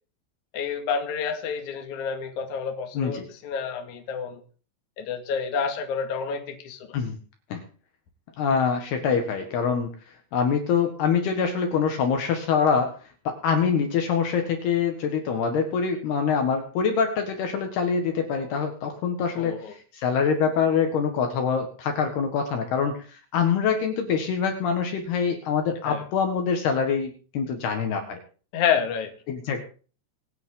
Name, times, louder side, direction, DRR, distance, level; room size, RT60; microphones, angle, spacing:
voice 1, 0.5-4.4 5.0-6.9 19.4-19.7 25.9-26.0 28.5-29.1, left 6 dB, 50° left, 4 dB, 2.9 m, -29 dB
voice 2, 2.9-3.3 6.9-7.2 7.5-7.6 8.4-9.9 10.3-12.9 13.2-28.2 29.3-29.6, left 6 dB, 65° left, 5 dB, 3.3 m, -25 dB
25.5 x 9.3 x 3.8 m, 0.40 s
omnidirectional pair, 5.4 m